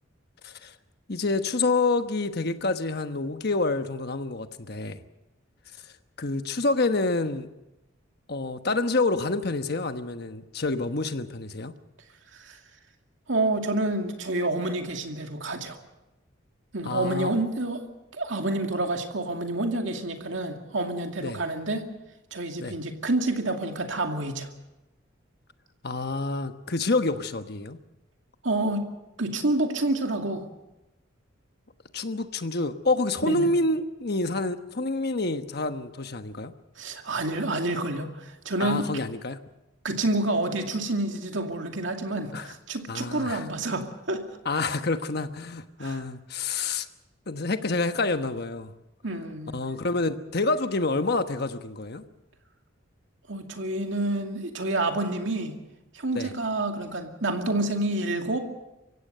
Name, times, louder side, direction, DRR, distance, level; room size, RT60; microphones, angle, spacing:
voice 1, 1.1-5.0 6.2-7.5 8.3-11.7 16.8-17.3 21.2-21.4 22.6-22.8 25.8-27.8 31.9-36.5 38.6-39.4 42.3-42.5 42.9-43.4 44.4-46.9 47.3-48.7 49.5-52.0 56.1-56.3, left 3 dB, 50° left, 8 dB, 1.2 m, -27 dB
voice 2, 13.3-15.8 16.7-17.9 18.1-21.9 22.3-24.5 28.4-28.8 29.2-30.4 33.2-33.5 36.8-38.9 39.8-44.2 45.8-46.0 49.0-49.5 53.3-55.6 55.9-58.4, right 2 dB, 65° right, 4 dB, 2.4 m, -28 dB
24.5 x 16.5 x 6.7 m, 0.98 s
head